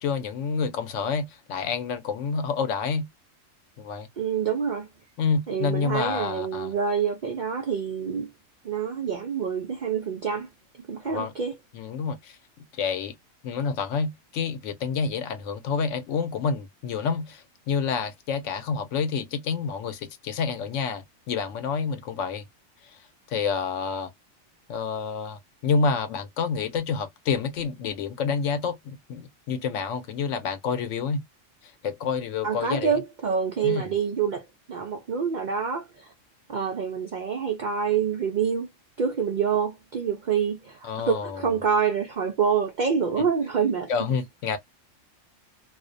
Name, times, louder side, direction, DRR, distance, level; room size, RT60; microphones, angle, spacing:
voice 1, 0.0-3.1 3.8-4.1 5.2-6.7 11.1-11.3 11.7-12.4 12.7-13.1 13.4-22.4 22.8-23.0 23.3-24.1 24.7-31.2 31.8-32.9 33.6-33.8 40.9-41.4 43.9-44.6, left 5 dB, 70° left, 0.9 m, -28 dB
voice 2, 4.2-4.9 5.5-8.3 8.6-10.5 10.9-11.6 32.4-36.1 36.5-38.7 39.0-43.9, right 6 dB, 90° right, 0.4 m, -27 dB
2.4 x 2.1 x 2.4 m
omnidirectional pair, 1.4 m